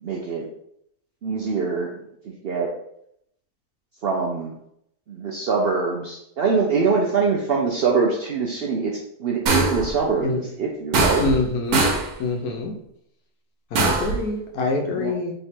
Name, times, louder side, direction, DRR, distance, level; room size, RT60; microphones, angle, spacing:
voice 1, 0.0-0.5 1.2-2.0 2.2-2.7 4.0-4.5 5.1-11.3 14.9-15.1, right 4 dB, 70° right, 0 dB, 0.5 m, -24 dB
sound 1, 9.5-9.9 10.9-11.5 11.7-12.1 13.7-14.2, right 3 dB, 85° right, 1.3 m, -21 dB
voice 2, 11.2-11.8 12.2-12.7 13.7-15.3, left 3 dB, 90° left, 3 dB, 1.3 m, -25 dB
3.3 x 2.9 x 4.3 m, 0.73 s
omnidirectional pair, 1.5 m